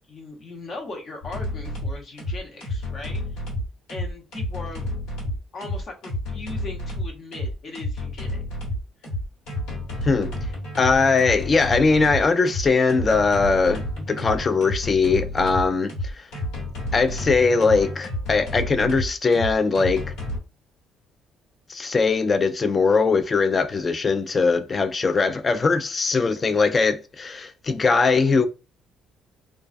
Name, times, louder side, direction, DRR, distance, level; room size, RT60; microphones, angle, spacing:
voice 1, 0.1-3.2 3.9-5.0 5.2-8.4, left 2 dB, 50° left, 0.8 m, -39 dB
sound 1, 1.2-20.4, left 1 dB, 85° left, 1.3 m, -30 dB
voice 2, 10.8-16.3 16.9-20.0 21.7-28.5, left 4 dB, 30° left, 0.3 m, -21 dB
2.3 x 2.2 x 2.4 m
cardioid pair, 100°, 0 cm